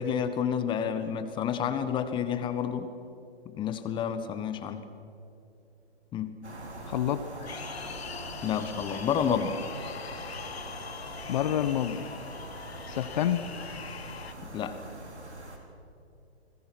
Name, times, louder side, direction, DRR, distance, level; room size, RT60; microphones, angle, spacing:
voice 1, 0.0-2.9 3.5-4.8 6.1-6.3 8.4-9.6 14.5-14.8, left 8 dB, 15° left, 10 dB, 1.2 m, -29 dB
sound 1, 6.4-15.6, right 1 dB, 90° right, 4.7 m, -43 dB
voice 2, 6.8-7.5 11.3-12.1 12.9-13.4, left 10 dB, 45° left, 11 dB, 1.3 m, -28 dB
sound 2, 7.5-14.3, left 7 dB, 65° left, 1.9 m, -42 dB
29.5 x 21.0 x 6.2 m, 2.6 s
hypercardioid pair, 135°, 33 cm